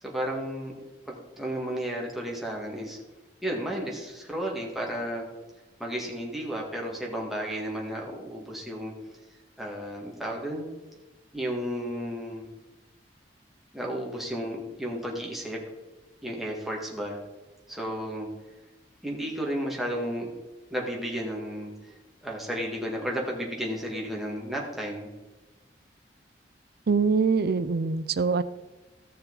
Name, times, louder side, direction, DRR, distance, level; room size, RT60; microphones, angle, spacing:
voice 1, 0.0-0.7 1.1-3.0 3.4-5.3 5.8-8.9 9.6-10.6 11.3-12.5 13.7-15.6 16.2-17.2 17.7-18.3 19.0-20.3 20.7-21.9 22.2-25.1, equal, ahead, -2 dB, 2.0 m, -33 dB
voice 2, 26.9-28.4, right 5 dB, 60° right, 15 dB, 0.5 m, -24 dB
14.0 x 6.8 x 4.0 m, 1.1 s
head